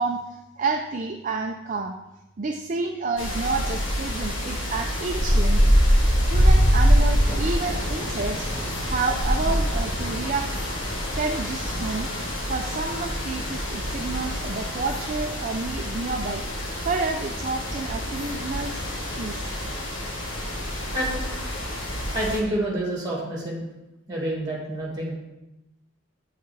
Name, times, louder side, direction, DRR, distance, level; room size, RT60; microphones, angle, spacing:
voice 1, 0.0-2.0 2.4-5.6 6.3-8.5 8.8-10.5 11.2-12.1 12.5-16.4 16.8-19.5, right 3 dB, 40° right, 4 dB, 0.4 m, -29 dB
sound 1, 3.2-22.4, equal, 65° left, 1.5 m, -25 dB
Thunder / Rain, 3.6-14.5, right 1 dB, 20° left, 1.7 m, -43 dB
sound 2, 8.3-15.0, left 1 dB, 50° left, 1.2 m, -43 dB
voice 2, 22.1-23.7 24.1-25.1, right 1 dB, 20° right, -4 dB, 2.4 m, -28 dB
9.5 x 5.7 x 3.3 m, 0.97 s
head